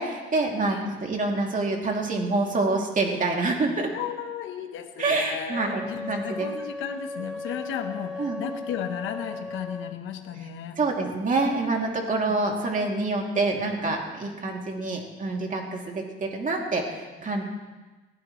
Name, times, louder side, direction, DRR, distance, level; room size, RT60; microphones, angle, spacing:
voice 1, 0.0-3.9 5.0-6.5 8.2-8.4 10.8-17.4, right 3 dB, 40° right, 0 dB, 2.7 m, -27 dB
voice 2, 3.9-10.8 12.3-12.5 14.7-14.9, left 8 dB, 90° left, 6 dB, 1.1 m, -34 dB
Wind instrument woodwind instrument, 5.5-10.0, left 3 dB, 5° right, 1.3 m, -36 dB
20.5 x 14.5 x 3.2 m, 1.2 s
cardioid pair, 90°, 20 cm